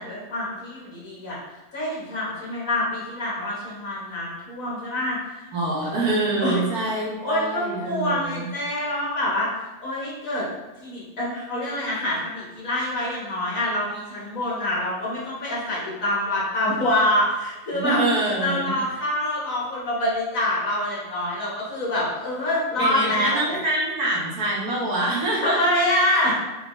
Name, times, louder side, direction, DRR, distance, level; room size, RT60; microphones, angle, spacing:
voice 1, 0.0-1.4 1.7-6.0 6.4-10.5 10.8-18.0 18.4-23.6 25.4-26.3, left 1 dB, 65° left, -6 dB, 1.8 m, -26 dB
voice 2, 5.5-8.5 17.7-18.8 22.8-25.6, right 2 dB, 85° right, -5 dB, 1.7 m, -25 dB
4.0 x 4.0 x 3.1 m, 1.1 s
omnidirectional pair, 1.6 m